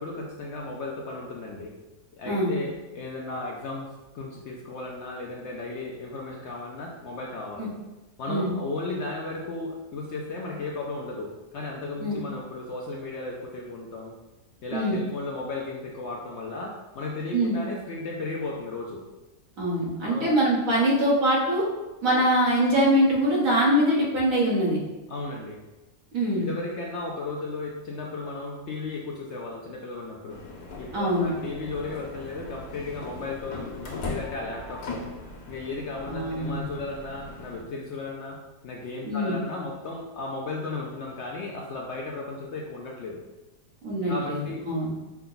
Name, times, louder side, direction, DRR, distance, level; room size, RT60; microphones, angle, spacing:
voice 1, 0.0-1.7 2.2-3.9 4.1-7.7 8.2-14.1 14.6-19.0 20.0-20.3 25.1-25.6 26.4-30.4 30.8-35.0 35.5-38.4 38.6-43.2 44.1-44.6, left 3 dB, 65° left, -2 dB, 0.7 m, -35 dB
voice 2, 19.6-21.6 22.0-24.8 26.1-26.5 30.9-31.3 36.1-36.7 39.0-39.4 43.8-44.9, equal, 65° right, -4 dB, 1.6 m, -23 dB
sound 1, 30.3-37.6, left 2 dB, 85° left, 1.3 m, -39 dB
5.7 x 2.2 x 3.9 m, 1.1 s
omnidirectional pair, 1.6 m